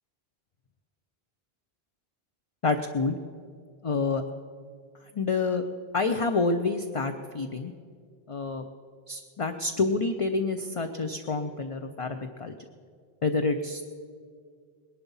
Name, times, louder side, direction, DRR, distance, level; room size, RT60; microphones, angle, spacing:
voice 1, 2.6-3.2 3.8-4.2 5.1-5.7 5.9-7.7 8.3-8.6 9.1-12.5 13.2-13.9, left 3 dB, 40° left, 7 dB, 0.6 m, -28 dB
19.5 x 11.0 x 5.5 m, 2.1 s
omnidirectional pair, 1.0 m